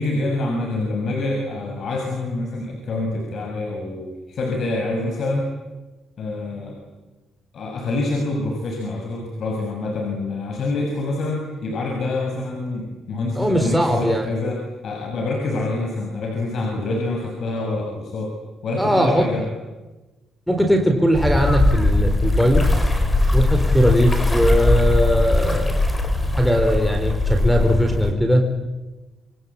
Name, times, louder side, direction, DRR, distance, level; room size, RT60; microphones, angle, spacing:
voice 1, 0.0-5.5 6.2-6.8 7.5-18.3 18.6-19.5, left 2 dB, 60° left, 1 dB, 6.7 m, -26 dB
voice 2, 13.3-14.3 18.8-19.3 20.5-22.7 23.3-25.8 26.4-28.5, equal, ahead, 5 dB, 4.4 m, -19 dB
sound 1, 21.1-28.1, left 2 dB, 20° left, 5.6 m, -20 dB
27.5 x 24.5 x 8.7 m, 1.2 s
cardioid pair, 90°, 0 cm